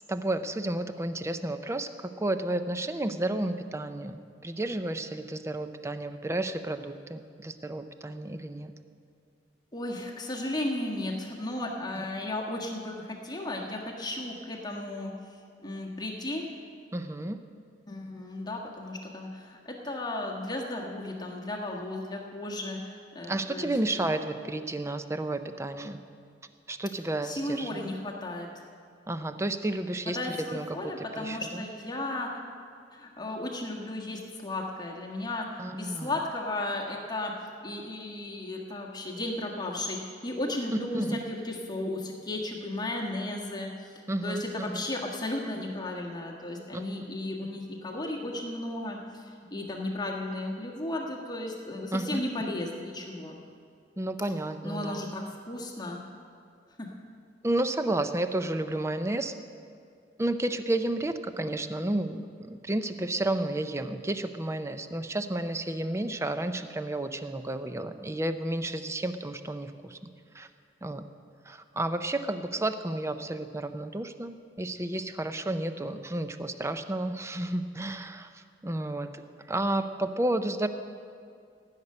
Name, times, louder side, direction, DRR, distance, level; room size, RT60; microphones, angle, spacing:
voice 1, 0.1-1.9 2.2-8.7 16.9-17.4 23.3-26.0 26.7-27.8 29.1-30.2 30.5-31.6 35.6-36.1 40.9-41.2 44.1-44.8 46.7-46.8 51.9-52.2 54.0-55.1 57.4-59.3 60.2-70.0 70.4-70.5 70.8-71.0 71.5-78.3 78.6-79.1 79.5-80.7, right 1 dB, 15° right, 9 dB, 0.5 m, -31 dB
voice 2, 9.7-15.1 15.6-16.4 17.9-24.1 27.2-28.5 30.1-32.3 32.9-37.3 37.6-53.4 54.6-56.0 56.8-56.9, left 1 dB, 25° left, -1 dB, 1.5 m, -35 dB
15.0 x 6.7 x 9.6 m, 2.3 s
head